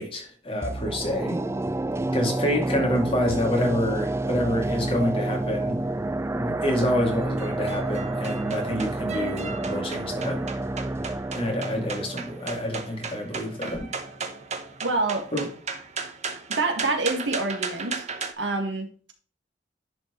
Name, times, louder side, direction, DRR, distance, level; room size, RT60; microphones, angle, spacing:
voice 1, 0.0-1.4 2.1-5.8 6.3-10.4 11.3-13.9 15.3-15.5, equal, 30° left, 2.3 m, -27 dB
sound 1, 0.6-13.7 14.0-14.1, right 2 dB, 15° right, 0.4 m, -29 dB
sound 2, 6.6-18.3, right 5 dB, 40° right, 1.0 m, -36 dB
voice 2, 14.8-15.3 16.5-18.0 18.4-18.9, right 3 dB, 75° right, 1.6 m, -26 dB
10.5 x 4.5 x 3.0 m
head